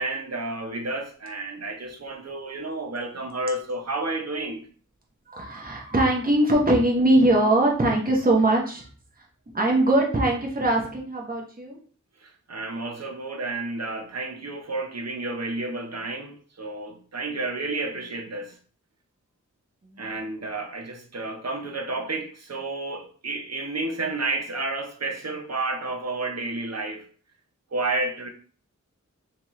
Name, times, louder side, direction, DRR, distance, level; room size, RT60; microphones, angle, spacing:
voice 1, 0.0-4.6 12.2-18.6 20.0-27.0 27.7-28.3, right 2 dB, 55° right, 0.8 m, -31 dB
voice 2, 5.3-8.9 9.5-11.8 19.8-20.0, right 1 dB, 30° right, 1.0 m, -21 dB
3.4 x 3.0 x 3.1 m
wide cardioid pair, 50°, 30 cm